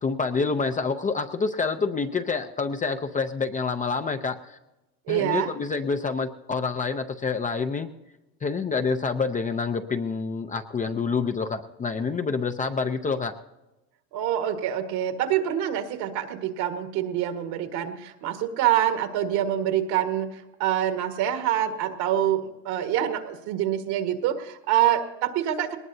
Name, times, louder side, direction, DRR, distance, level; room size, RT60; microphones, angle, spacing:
voice 1, 0.0-4.6 5.1-7.9 8.4-13.3, left 4 dB, 20° left, 7 dB, 0.6 m, -27 dB
voice 2, 5.1-5.5 14.1-25.8, right 11 dB, 60° right, 7 dB, 1.8 m, -26 dB
20.5 x 19.0 x 2.7 m, 0.99 s
supercardioid pair, 105°, 42 cm